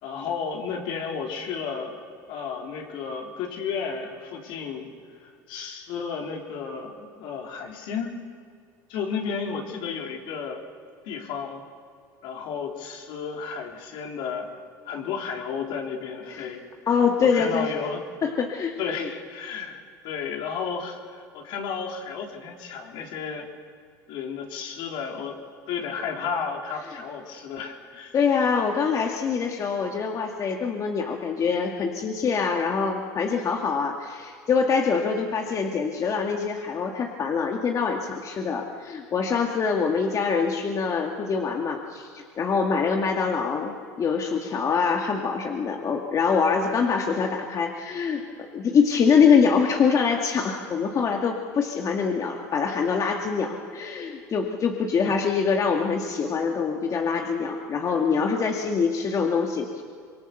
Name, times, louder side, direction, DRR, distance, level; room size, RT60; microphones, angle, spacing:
voice 1, 0.0-2.0 2.3-4.9 5.2-8.1 8.9-10.6 11.0-11.6 12.2-14.5 14.9-16.6 17.2-18.0 18.8-23.5 24.1-25.4 25.7-28.2, left 6 dB, 65° left, 1 dB, 3.8 m, -33 dB
voice 2, 16.9-17.7 18.2-19.1 28.1-48.2 48.5-59.8, left 5 dB, 40° left, 1 dB, 2.2 m, -24 dB
26.0 x 23.0 x 6.8 m, 2.2 s
hypercardioid pair, 85°, 9 cm